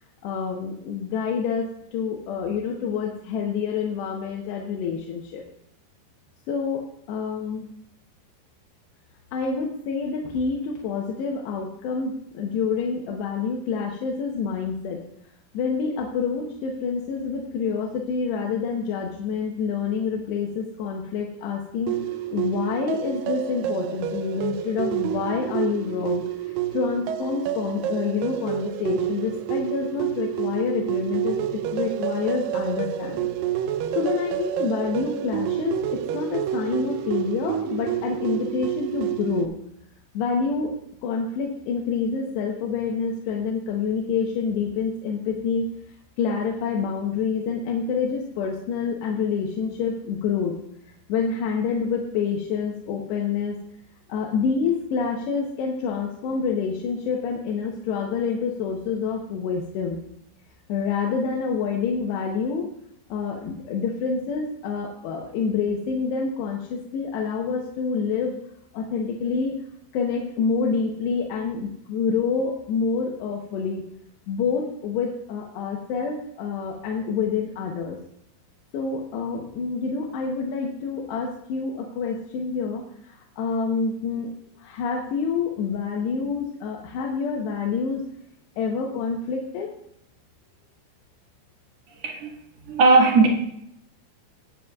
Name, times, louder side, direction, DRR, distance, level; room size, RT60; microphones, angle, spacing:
voice 1, 0.2-1.6 1.9-5.4 6.5-7.7 9.3-15.0 15.5-21.9 22.3-31.4 31.7-33.3 34.0-39.5 40.1-45.7 46.2-50.6 51.1-53.6 54.1-60.0 60.7-62.7 63.1-68.4 68.7-69.6 69.9-73.9 74.3-78.0 78.7-84.3 84.6-88.1 88.6-89.7, left 5 dB, 90° left, 0 dB, 3.2 m, -27 dB
sound 1, 21.9-39.5, right 11 dB, 90° right, 1.9 m, -29 dB
voice 2, 92.0-92.3 92.6-93.3, right 3 dB, 50° right, 0 dB, 2.2 m, -17 dB
18.5 x 8.9 x 2.4 m, 0.75 s
omnidirectional pair, 4.7 m